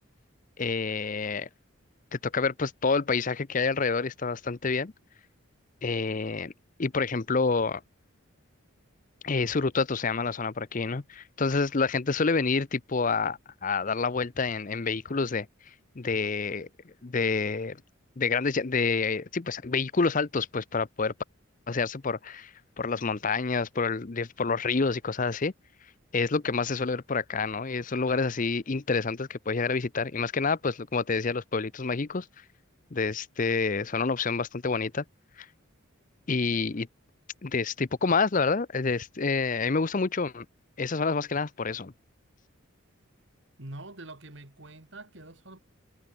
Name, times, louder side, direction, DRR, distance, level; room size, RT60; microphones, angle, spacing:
voice 1, 0.6-1.5 2.1-4.9 5.8-6.5 6.8-7.8 9.2-15.5 16.0-16.7 17.0-17.8 18.2-21.1 21.7-22.5 22.8-25.5 26.1-32.3 32.9-35.0 35.4-35.5 36.3-36.9 37.4-40.5 40.8-41.9, left 4 dB, 40° left, 0.6 m, -28 dB
voice 2, 43.6-45.6, right 2 dB, 60° right, 3.0 m, -44 dB
head